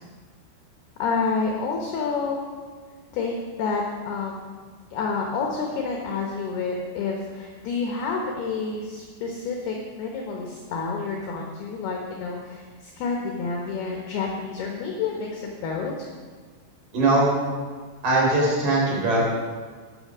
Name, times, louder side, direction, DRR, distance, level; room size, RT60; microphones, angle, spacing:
voice 1, 1.0-2.5 3.1-4.5 4.9-16.1, left 4 dB, 70° left, 1 dB, 2.6 m, -29 dB
voice 2, 16.9-17.3 18.0-19.2, right 2 dB, 45° right, -3 dB, 4.8 m, -20 dB
12.5 x 9.6 x 6.2 m, 1.5 s
omnidirectional pair, 5.9 m